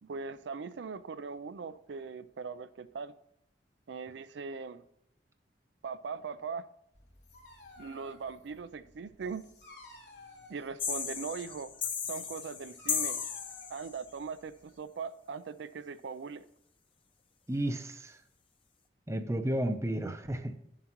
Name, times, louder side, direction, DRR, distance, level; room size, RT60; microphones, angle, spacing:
voice 1, 0.0-3.1 3.9-4.8 5.8-6.6 7.8-9.5 10.5-11.7 12.1-13.2 13.7-16.4, right 5 dB, 80° right, 0.4 m, -40 dB
Dog, 6.9-14.8, left 3 dB, 75° left, 3.1 m, -54 dB
sound 1, 10.8-14.0, left 7 dB, 30° left, 0.7 m, -35 dB
voice 2, 17.5-18.2 19.1-20.6, right 1 dB, 15° right, 0.6 m, -32 dB
11.5 x 7.4 x 3.0 m
head